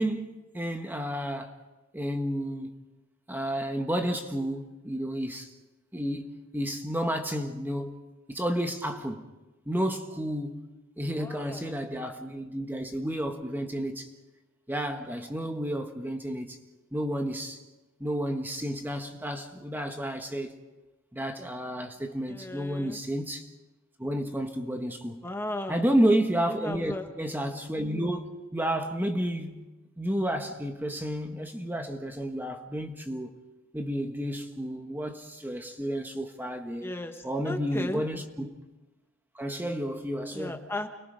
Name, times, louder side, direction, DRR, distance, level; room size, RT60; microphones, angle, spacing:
voice 1, 0.0-1.5 1.9-2.7 3.3-5.5 5.9-8.0 8.3-9.2 9.7-10.6 11.0-14.1 14.7-16.6 16.9-17.6 18.0-20.6 21.1-23.5 24.0-25.2 25.7-28.2 28.5-29.7 30.0-33.4 33.7-36.9 37.2-38.6 39.3-40.7, equal, 10° right, 1.4 m, -31 dB
voice 2, 11.2-11.8 22.3-23.0 25.2-25.8 26.5-27.1 36.8-38.0 40.3-40.9, left 1 dB, 10° left, 1.3 m, -36 dB
30.0 x 22.0 x 5.3 m
head